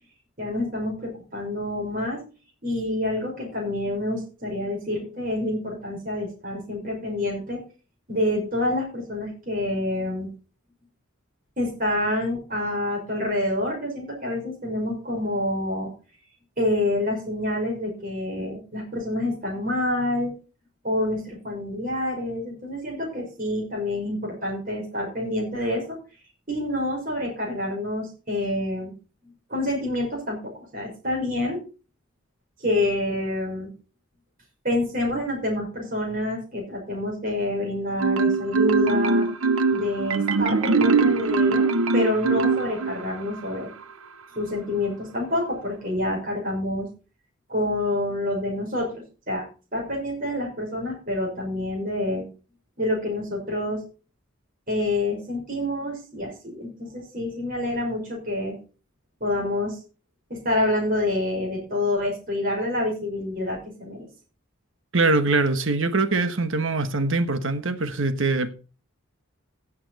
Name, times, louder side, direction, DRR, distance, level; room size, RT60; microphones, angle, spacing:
voice 1, 0.4-2.2 2.6-7.6 8.1-10.3 11.6-15.9 16.6-20.3 20.8-26.0 26.5-28.9 29.5-31.6 32.6-33.7 34.6-39.3 39.7-43.7 44.3-46.9 47.5-48.9 49.3-52.2 52.8-53.8 54.7-58.6 59.2-59.8 60.3-64.1, left 1 dB, 40° right, 5.8 m, -27 dB
Marimba xylophone, 38.0-43.2, right 4 dB, 85° right, 0.8 m, -21 dB
voice 2, 64.9-68.5, right 3 dB, 65° right, 1.3 m, -23 dB
15.5 x 7.5 x 4.2 m
head